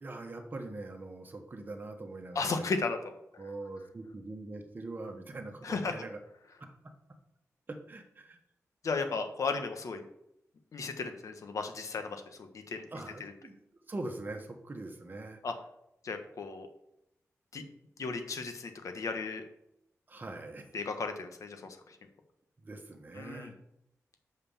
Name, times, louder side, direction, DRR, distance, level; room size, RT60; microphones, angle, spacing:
voice 1, 0.0-2.7 3.4-6.2 6.6-6.7 7.7-8.4 12.9-13.6 13.9-15.4 20.1-20.7 22.6-23.6, right 2 dB, 35° right, 4 dB, 1.4 m, -42 dB
voice 2, 2.3-3.0 3.3-3.4 5.6-5.9 8.8-10.0 10.7-12.8 13.2-13.3 15.4-15.5 16.0-16.7 17.5-17.6 18.0-19.4 20.7-22.0 23.2-23.5, left 4 dB, 70° left, 6 dB, 1.3 m, -35 dB
6.6 x 5.7 x 7.1 m, 0.82 s
wide cardioid pair, 135°, 6 cm